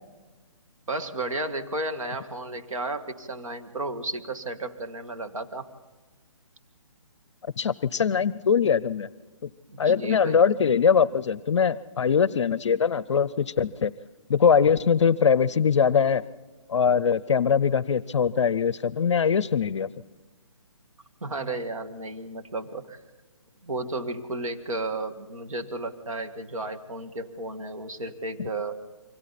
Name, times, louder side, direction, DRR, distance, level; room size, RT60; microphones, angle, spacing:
voice 1, 0.9-5.7 9.7-10.4 21.2-23.0 23.6-28.8, right 2 dB, 85° right, 7 dB, 2.1 m, -33 dB
voice 2, 7.6-9.1 9.4-9.5 9.8-13.9 14.3-16.2 16.7-19.9, left 6 dB, 60° left, 18 dB, 0.6 m, -22 dB
29.0 x 25.0 x 4.2 m, 1.3 s
hypercardioid pair, 165°, 17 cm